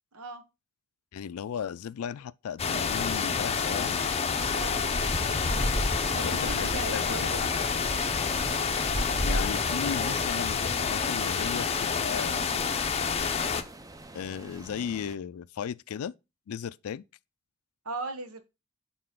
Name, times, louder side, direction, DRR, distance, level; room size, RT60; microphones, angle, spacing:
voice 1, 0.1-0.4 4.5-5.1 6.2-7.4 17.8-18.4, right 3 dB, 80° right, 1.1 m, -38 dB
voice 2, 1.1-4.2 6.1-7.6 9.2-12.5 14.1-16.1 16.5-17.0, left 7 dB, 80° left, 0.4 m, -36 dB
sound 1, 2.6-13.6, left 5 dB, 30° left, 0.6 m, -28 dB
sound 2, 3.5-15.1, equal, 15° right, 0.5 m, -38 dB
sound 3, 5.0-10.2, right 1 dB, 50° right, 3.5 m, -40 dB
6.7 x 4.3 x 3.7 m
head